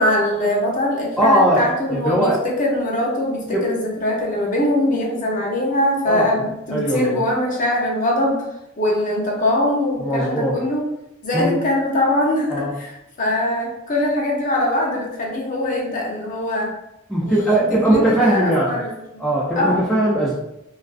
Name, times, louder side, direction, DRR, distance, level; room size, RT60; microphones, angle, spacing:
voice 1, 0.0-8.5 8.8-10.8 11.2-16.7 17.2-19.2 19.5-19.8, left 1 dB, 40° left, -2 dB, 0.6 m, -22 dB
voice 2, 1.2-1.6 1.9-2.4 3.5-3.7 6.1-6.3 6.7-7.2 10.0-10.6 11.3-11.5 12.5-12.7 17.1-18.7 19.2-20.3, right 1 dB, ahead, -7 dB, 0.3 m, -19 dB
2.3 x 2.3 x 2.4 m, 0.86 s
head